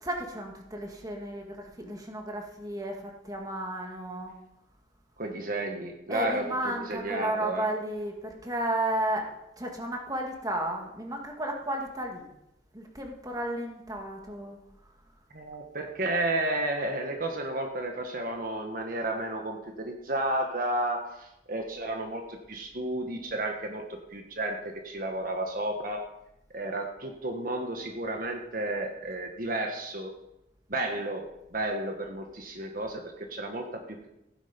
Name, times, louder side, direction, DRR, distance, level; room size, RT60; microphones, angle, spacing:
voice 1, 0.0-4.3 6.1-9.3 9.6-12.3 12.7-14.6, right 1 dB, 20° right, 2 dB, 2.1 m, -33 dB
voice 2, 5.2-7.7 15.3-26.1 26.5-30.1 30.7-34.1, right 1 dB, 50° right, 3 dB, 1.5 m, -32 dB
16.0 x 10.5 x 5.3 m, 0.87 s
head